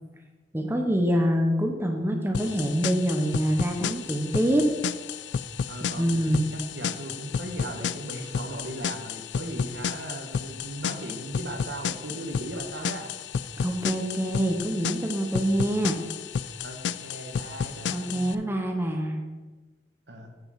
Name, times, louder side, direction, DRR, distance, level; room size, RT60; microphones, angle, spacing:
voice 1, 0.5-4.7 6.0-6.5 13.6-16.0 17.9-19.2, equal, 15° right, 3 dB, 0.8 m, -25 dB
sound 1, 2.3-18.3, left 7 dB, 80° left, 0.3 m, -32 dB
voice 2, 5.7-13.1 15.6-15.7 16.6-18.4 20.1-20.3, right 1 dB, 80° right, 3 dB, 1.3 m, -38 dB
9.2 x 5.2 x 5.6 m, 1.3 s
head